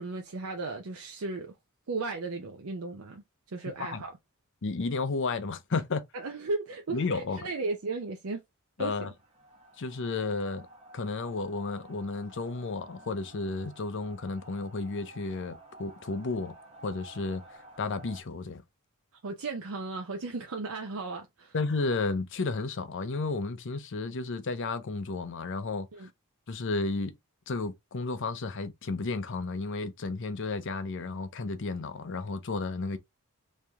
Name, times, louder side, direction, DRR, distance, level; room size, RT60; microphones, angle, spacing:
voice 1, 0.0-1.5 1.9-4.1 6.1-8.4 8.8-9.1 19.2-21.5 25.9-26.1, right 3 dB, 65° right, 0.6 m, -35 dB
voice 2, 4.6-6.0 6.9-7.5 8.8-9.1 9.8-10.7 10.9-16.5 16.8-18.6 21.5-26.1 26.5-27.1 27.5-33.0, left 3 dB, 55° left, 0.6 m, -32 dB
sound 1, 9.1-18.2, right 1 dB, 25° right, 1.0 m, -52 dB
3.2 x 2.7 x 3.4 m
head